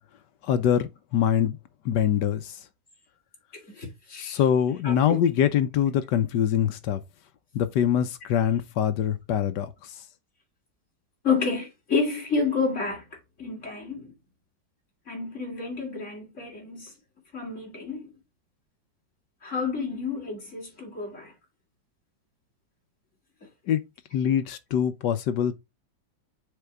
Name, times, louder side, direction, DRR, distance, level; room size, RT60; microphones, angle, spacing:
voice 1, 0.5-1.6 1.8-2.5 4.2-7.0 7.5-9.7 23.7-23.8 24.1-25.6, left 9 dB, 70° left, 1.3 m, -24 dB
voice 2, 3.7-4.4 4.8-5.2 11.2-13.0 13.4-14.1 15.1-16.9 17.3-18.1 19.4-21.3, left 4 dB, 40° left, 3.3 m, -29 dB
6.7 x 4.6 x 3.5 m
omnidirectional pair, 2.0 m